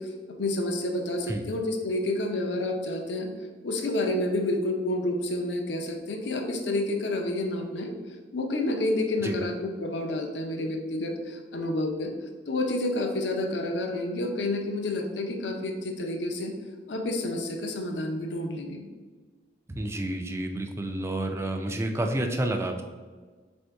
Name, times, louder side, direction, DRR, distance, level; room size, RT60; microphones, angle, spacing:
voice 1, 0.0-3.3 3.6-7.9 8.3-12.1 12.5-16.5 16.9-18.8, left 1 dB, 80° left, 3 dB, 0.6 m, -29 dB
voice 2, 19.7-22.8, right 1 dB, 15° right, 4 dB, 0.3 m, -29 dB
4.2 x 2.6 x 4.5 m, 1.4 s
head